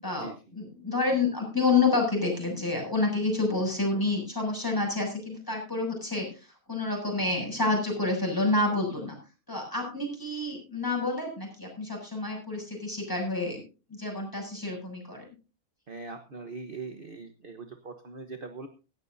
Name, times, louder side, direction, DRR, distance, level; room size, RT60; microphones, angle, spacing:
voice 1, 0.0-6.3 6.7-9.1 9.5-13.6 13.9-15.2, left 3 dB, 15° left, 1 dB, 7.2 m, -28 dB
voice 2, 15.9-18.7, right 4 dB, 40° right, 6 dB, 1.3 m, -41 dB
17.0 x 15.5 x 2.7 m, 0.34 s
omnidirectional pair, 1.5 m